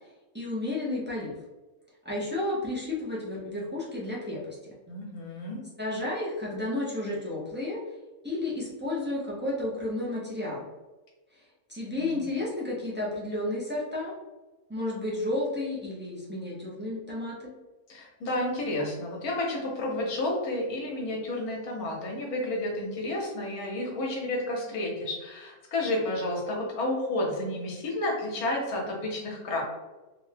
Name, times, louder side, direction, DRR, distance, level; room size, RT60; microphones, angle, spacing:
voice 1, 0.3-1.4 2.0-4.7 5.8-7.8 8.2-10.7 11.4-11.5 11.7-14.1 14.7-17.5, left 2 dB, 15° right, -6 dB, 0.3 m, -32 dB
voice 2, 4.9-5.6 12.0-12.2 17.9-29.6, left 1 dB, 75° left, -1 dB, 1.4 m, -31 dB
3.4 x 2.1 x 3.3 m, 1.2 s
omnidirectional pair, 1.6 m